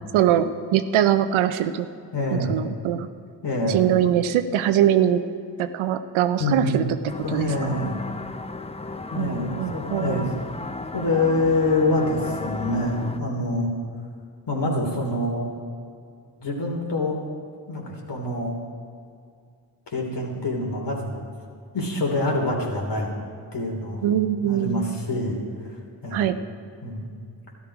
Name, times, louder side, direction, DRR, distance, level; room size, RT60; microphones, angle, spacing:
voice 1, 0.1-1.9 2.3-3.1 3.7-5.2 5.6-6.9 7.3-7.7 9.1-10.2 24.0-25.0 26.1-26.4, right 10 dB, 80° right, 11 dB, 0.7 m, -22 dB
voice 2, 2.1-2.6 3.4-3.8 6.4-8.0 9.1-10.3 10.9-13.7 14.5-15.5 16.4-17.2 17.7-18.5 19.9-21.2 21.7-23.1 23.5-24.1 24.4-26.3 26.8-27.1, left 2 dB, 60° left, 0 dB, 3.2 m, -26 dB
sound 1, 7.1-13.2, left 3 dB, 15° left, 0.7 m, -34 dB
13.0 x 11.0 x 4.8 m, 2.3 s
supercardioid pair, 45°, 47 cm